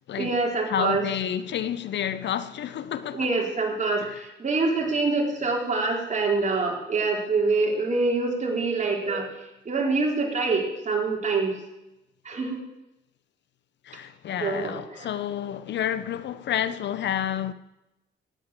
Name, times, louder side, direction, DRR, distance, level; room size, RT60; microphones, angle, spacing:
voice 1, 0.2-1.1 3.1-9.3 9.7-11.6 12.2-12.6 14.4-15.1, right 3 dB, 35° right, 4.0 m, -25 dB
voice 2, 0.7-3.3 4.0-4.2 13.9-17.5, left 10 dB, 65° left, 0.8 m, -30 dB
17.0 x 8.5 x 7.5 m
cardioid pair, 90°, 20 cm